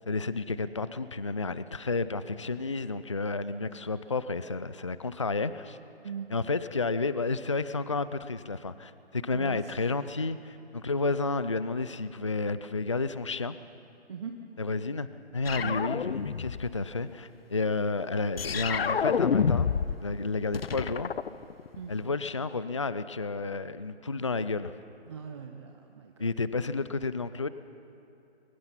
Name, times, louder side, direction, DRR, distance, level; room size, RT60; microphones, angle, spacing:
voice 1, 0.1-5.8 6.3-13.6 14.6-15.1 15.3-19.7 20.0-21.1 21.9-24.7 26.2-27.5, left 3 dB, 30° left, 14 dB, 0.4 m, -31 dB
voice 2, 9.3-9.7 14.1-14.3 15.6-15.8 21.8-21.9 25.1-26.3, right 7 dB, 25° right, 4 dB, 0.8 m, -40 dB
sound 1, 15.5-16.8 18.4-20.0 20.3-21.9, left 6 dB, 65° left, 0.7 m, -28 dB
23.0 x 21.5 x 5.7 m, 2.8 s
figure-of-eight pair, 155°, 32 cm